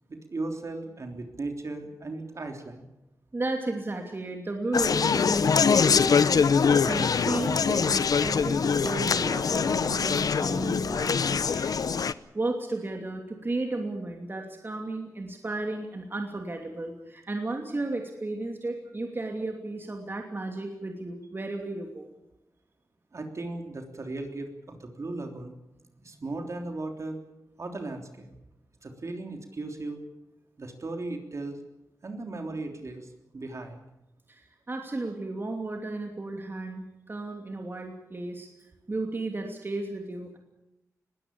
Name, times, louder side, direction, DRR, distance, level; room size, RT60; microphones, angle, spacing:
voice 1, 0.1-2.9 23.1-25.6 26.0-27.2 27.6-28.3 28.8-30.0 30.6-31.6 32.0-33.8, right 2 dB, 50° right, 4 dB, 3.4 m, -37 dB
voice 2, 3.3-11.8 12.3-22.1 34.3-38.5 38.9-40.4, right 2 dB, 35° right, 3 dB, 2.8 m, -34 dB
Conversation, 4.7-12.1, left 6 dB, 75° left, 0.7 m, -23 dB
21.0 x 17.5 x 8.7 m, 0.91 s
wide cardioid pair, 90°, 6 cm